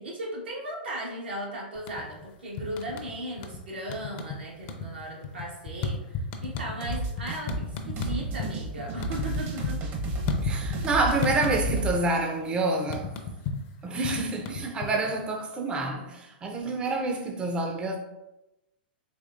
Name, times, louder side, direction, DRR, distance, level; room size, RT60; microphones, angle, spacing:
voice 1, 0.0-9.8 14.0-14.3, right 1 dB, 85° right, 1.2 m, -37 dB
sound 1, 1.7-2.2 2.6-3.6 3.9-4.4 4.6-8.5 8.8-10.9 11.2-12.1 12.3-15.2, left 5 dB, 45° left, 0.5 m, -33 dB
sound 2, 6.8-12.0, right 2 dB, 40° right, 0.8 m, -32 dB
voice 2, 10.4-13.1 13.8-18.0, right 2 dB, 20° right, 0.4 m, -28 dB
4.1 x 3.0 x 2.5 m
hypercardioid pair, 105°, 5 cm